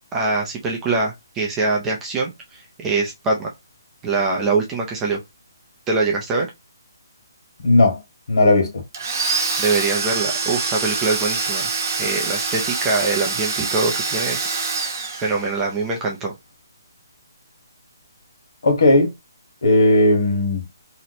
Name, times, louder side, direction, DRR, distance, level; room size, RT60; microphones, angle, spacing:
voice 1, 0.1-3.5 4.0-5.2 5.9-6.5 9.2-11.7 12.0-14.6 15.2-16.3, right 3 dB, 10° right, 0.4 m, -23 dB
voice 2, 7.6-8.0 8.3-8.7 18.6-19.1 19.6-20.6, left 2 dB, 65° left, 1.4 m, -15 dB
Domestic sounds home sounds, 8.9-15.7, right 4 dB, 50° right, 0.8 m, -25 dB
2.9 x 2.1 x 4.1 m
hypercardioid pair, 175°, 2 cm